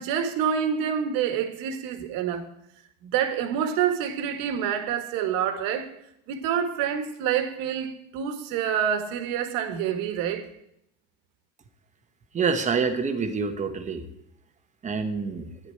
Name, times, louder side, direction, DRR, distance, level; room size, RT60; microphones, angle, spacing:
voice 1, 0.0-2.5 3.0-5.9 6.3-10.5, right 8 dB, 60° right, 1.6 m, -27 dB
voice 2, 12.3-14.1 14.8-15.5, right 5 dB, 20° right, 1.0 m, -26 dB
13.0 x 10.0 x 4.5 m
cardioid pair, 155°, 39 cm